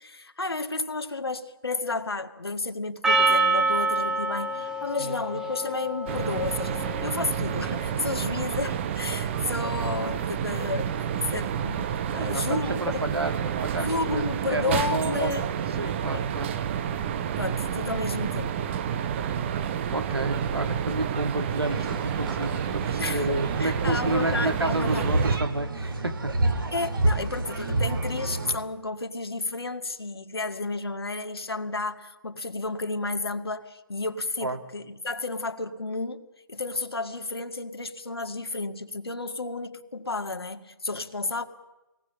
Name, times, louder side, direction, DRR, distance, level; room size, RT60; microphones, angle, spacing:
voice 1, 0.0-13.1 13.8-15.5 16.1-16.2 17.4-18.6 23.0-25.1 26.7-41.4, left 3 dB, 80° left, 1.9 m, -32 dB
Percussion, 3.0-7.6, right 3 dB, 5° right, 1.3 m, -27 dB
voice 2, 5.0-5.4 12.2-15.3 15.8-16.5 19.9-26.3 34.4-34.6, right 2 dB, 85° right, 2.1 m, -30 dB
sound 1, 6.1-25.4, right 8 dB, 30° right, 1.0 m, -30 dB
sound 2, 21.6-28.6, right 2 dB, 60° right, 3.5 m, -29 dB
25.5 x 18.5 x 7.6 m
figure-of-eight pair, 140°, 13 cm